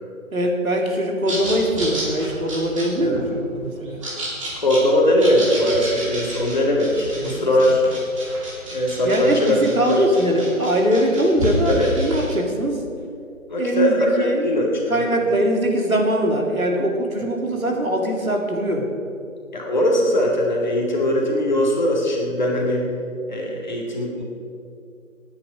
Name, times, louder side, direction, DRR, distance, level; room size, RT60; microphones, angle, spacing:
voice 1, 0.3-4.0 7.1-7.5 9.0-12.8 13.6-18.8, right 1 dB, 80° right, 1 dB, 3.0 m, -22 dB
sound 1, 1.3-12.3, right 1 dB, 25° right, 2.9 m, -31 dB
voice 2, 4.6-7.8 8.7-9.6 9.9-10.0 11.7-11.9 13.5-15.0 19.5-22.9 23.3-24.2, left 1 dB, 35° left, -1 dB, 2.0 m, -20 dB
18.5 x 9.6 x 5.1 m, 2.4 s
figure-of-eight pair, 160°, 41 cm